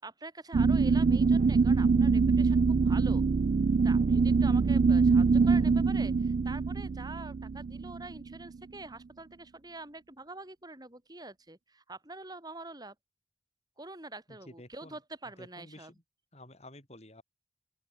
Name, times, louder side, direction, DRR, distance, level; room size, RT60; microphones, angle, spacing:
voice 1, 0.0-3.2 3.8-12.9 13.8-15.9, right 2 dB, 20° right, 5.6 m, -45 dB
sound 1, 0.5-8.5, right 4 dB, 45° right, 0.3 m, -24 dB
voice 2, 14.3-15.0 15.4-15.9 16.3-17.2, left 1 dB, 35° left, 6.6 m, -51 dB
open air
head